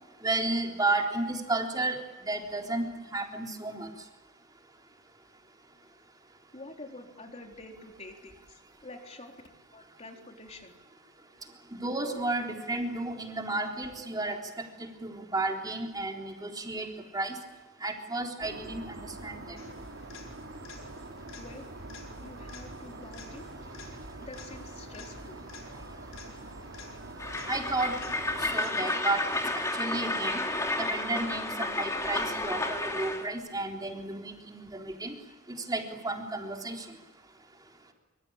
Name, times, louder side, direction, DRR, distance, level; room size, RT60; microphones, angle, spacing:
voice 1, 0.2-3.9 11.7-14.4 15.0-16.9 17.1-17.4 17.8-19.6 27.5-28.0 28.5-29.3 29.5-30.4 30.8-35.1 35.7-36.9, right 2 dB, 20° right, 1 dB, 3.6 m, -32 dB
voice 2, 6.5-9.3 9.7-10.7 21.4-21.7 22.2-23.5 24.2-25.4, left 2 dB, 35° left, 3 dB, 3.7 m, -47 dB
sound 1, 18.4-28.6, right 2 dB, 90° right, 3.4 m, -45 dB
sound 2, 19.6-29.2 37.1-37.2, left 5 dB, 80° left, 4.6 m, -52 dB
Train, 27.2-33.3, left 2 dB, 15° left, 2.8 m, -31 dB
25.5 x 25.5 x 8.9 m, 1.1 s
head